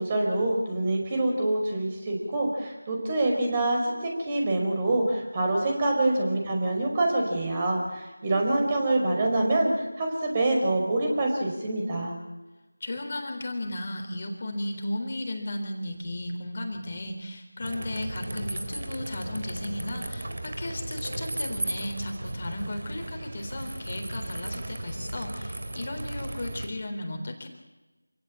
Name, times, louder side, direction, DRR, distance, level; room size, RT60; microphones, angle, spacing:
voice 1, 0.0-12.1, right 2 dB, 20° right, 1 dB, 4.9 m, -26 dB
voice 2, 12.8-27.5, left 1 dB, 35° left, 4 dB, 3.7 m, -35 dB
sound 1, 17.6-26.7, right 1 dB, 55° right, 3.0 m, -35 dB
27.5 x 17.0 x 8.8 m, 1.1 s
figure-of-eight pair, 170°, 0 cm